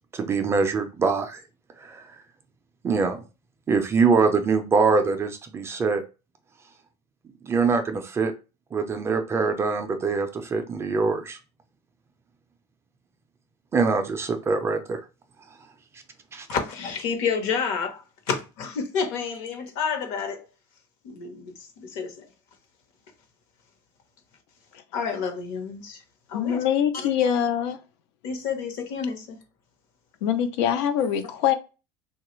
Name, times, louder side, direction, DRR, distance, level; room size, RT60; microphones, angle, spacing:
voice 1, 0.1-1.4 1.8-2.1 2.8-3.2 3.7-6.0 7.4-8.3 8.7-11.4 13.7-15.0 16.3-16.5, right 4 dB, 20° right, 0.3 m, -23 dB
voice 2, 16.5-20.4 21.0-22.3 24.9-26.0 26.3-26.6 28.2-29.4 31.0-31.1, left 6 dB, 60° left, 0.9 m, -29 dB
voice 3, 26.3-27.8 30.2-31.5, left 9 dB, 80° left, 0.5 m, -23 dB
3.2 x 2.3 x 3.0 m
cardioid pair, 150°, 14 cm